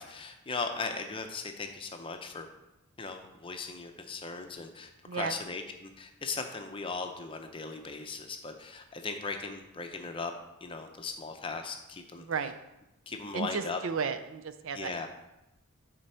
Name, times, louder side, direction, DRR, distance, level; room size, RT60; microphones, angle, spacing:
voice 1, 0.0-2.5 3.0-10.3 10.6-12.2 13.1-13.8 14.8-15.1, left 4 dB, 25° left, 5 dB, 0.6 m, -38 dB
voice 2, 5.0-5.4 12.2-12.5 13.3-15.1, right 5 dB, 60° right, 10 dB, 0.4 m, -34 dB
7.6 x 3.9 x 5.5 m, 0.94 s
head